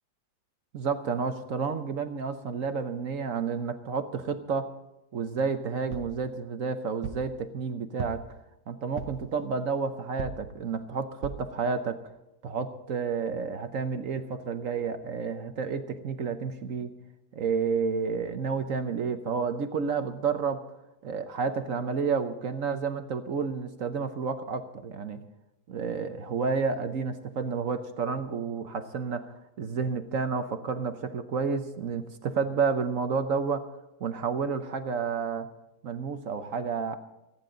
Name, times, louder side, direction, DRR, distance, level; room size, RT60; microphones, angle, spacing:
voice 1, 0.7-4.7 5.1-8.2 8.7-12.0 12.4-16.9 17.3-20.6 21.0-25.2 25.7-33.6 34.0-35.5 35.8-37.0, right 5 dB, 55° right, 8 dB, 1.0 m, -30 dB
sound 1, 5.9-6.2 7.0-7.3 8.0-8.4 9.0-9.3 10.2-10.5 11.2-11.5 12.1-12.2 12.5-12.6, right 7 dB, 75° right, 1.5 m, -37 dB
28.0 x 10.5 x 3.9 m, 0.93 s
omnidirectional pair, 2.1 m